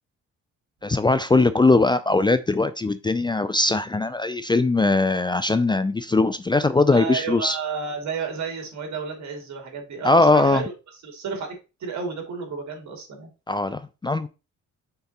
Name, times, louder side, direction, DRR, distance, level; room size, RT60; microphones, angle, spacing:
voice 1, 0.8-7.6 10.0-10.6 13.5-14.3, left 3 dB, 15° left, 0.4 m, -20 dB
voice 2, 6.9-10.7 11.0-11.5 11.8-13.3, right 5 dB, 65° right, 2.8 m, -31 dB
5.9 x 3.8 x 4.2 m
cardioid pair, 90°, 30 cm